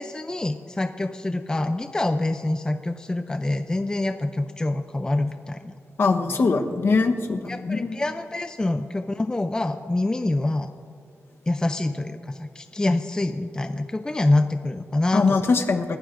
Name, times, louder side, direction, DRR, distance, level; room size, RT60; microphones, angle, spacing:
voice 1, 0.0-5.8 7.5-10.7 11.5-15.4, left 2 dB, 15° left, 8 dB, 0.4 m, -26 dB
voice 2, 6.0-8.0 15.1-16.0, left 4 dB, 50° left, 4 dB, 1.0 m, -22 dB
29.0 x 15.0 x 2.6 m, 2.2 s
wide cardioid pair, 155°, 5 cm